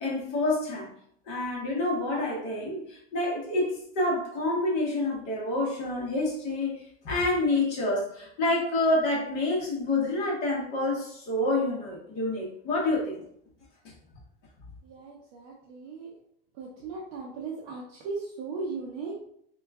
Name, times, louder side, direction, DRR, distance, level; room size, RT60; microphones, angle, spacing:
voice 1, 0.0-0.9 1.3-13.2, left 2 dB, 35° left, -3 dB, 0.9 m, -28 dB
voice 2, 14.8-16.1 16.6-19.2, right 4 dB, 40° right, -3 dB, 0.5 m, -37 dB
3.6 x 2.3 x 3.4 m, 0.69 s
supercardioid pair, 180°, 30 cm